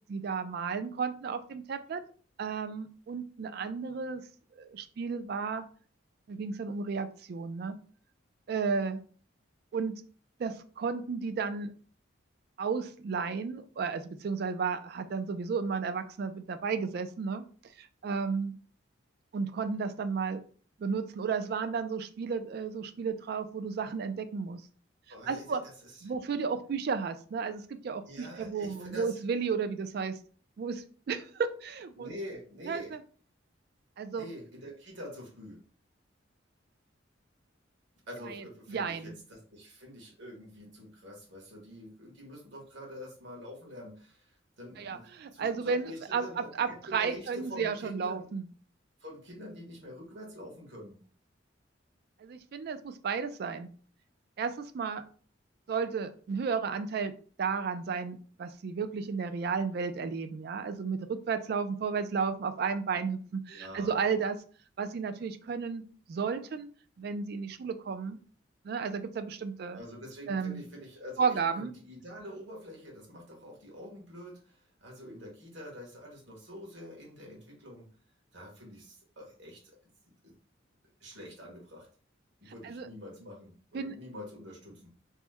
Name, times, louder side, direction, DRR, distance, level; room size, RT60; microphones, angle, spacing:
voice 1, 0.1-2.0 2.4-4.2 4.6-5.6 6.3-7.8 8.5-9.0 9.7-10.0 10.4-11.7 12.6-17.4 17.8-18.5 19.3-20.4 20.8-24.6 25.3-25.6 26.0-30.2 30.6-32.1 32.7-33.0 34.0-34.3 38.3-38.4 38.7-39.1 44.8-48.5 52.2-53.7 54.4-55.0 55.7-57.1 57.4-64.4 64.8-66.7 67.0-68.2 68.6-69.8 70.3-70.6 71.2-71.7 82.6-82.9 83.7-83.9, right 5 dB, 50° right, 10 dB, 0.3 m, -33 dB
voice 2, 25.1-26.1 28.0-29.2 31.9-32.9 34.1-35.6 38.1-48.3 49.0-51.0 63.5-64.0 69.7-77.9 78.3-79.8 80.1-80.3 81.0-81.9 82.4-84.9, equal, 70° right, -1 dB, 1.3 m, -46 dB
3.0 x 2.1 x 3.4 m, 0.42 s
head